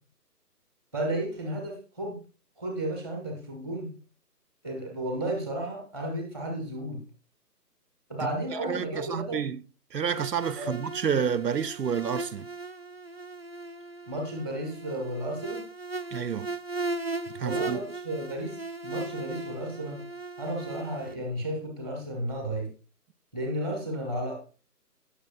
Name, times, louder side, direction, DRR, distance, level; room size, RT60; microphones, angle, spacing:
voice 1, 0.9-2.2 2.6-3.9 4.6-7.0 8.1-9.4 10.6-10.7 14.1-15.6 17.4-18.6 18.8-20.0 20.4-22.7 23.3-24.3, right 1 dB, 5° left, 1.0 m, -33 dB
voice 2, 8.6-9.6 9.9-12.5 16.1-16.5 17.4-17.8, right 7 dB, 80° right, 0.8 m, -29 dB
sound 1, 10.1-21.1, right 3 dB, 40° right, 0.4 m, -37 dB
17.0 x 6.4 x 2.5 m
figure-of-eight pair, 155°, 48 cm